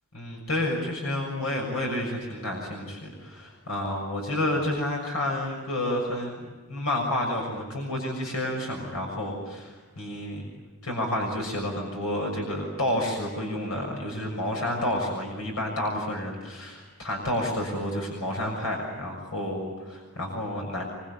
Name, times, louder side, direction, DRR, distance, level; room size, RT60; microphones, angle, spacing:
voice 1, 0.1-6.4 6.7-10.4 10.8-20.8, left 1 dB, 80° left, 0 dB, 6.8 m, -30 dB
25.5 x 25.0 x 8.4 m, 1.3 s
head